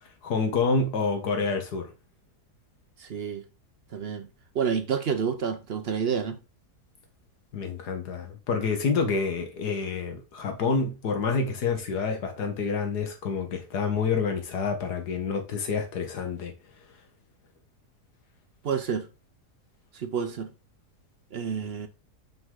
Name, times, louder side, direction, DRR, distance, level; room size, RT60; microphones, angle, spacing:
voice 1, 0.2-1.9 7.5-16.5, left 4 dB, 75° left, 1.8 m, -28 dB
voice 2, 3.0-3.4 3.9-4.3 4.5-6.4 18.6-19.1 19.9-20.5 21.3-21.9, right 6 dB, 55° right, 0.7 m, -29 dB
5.7 x 5.6 x 3.7 m
omnidirectional pair, 1.7 m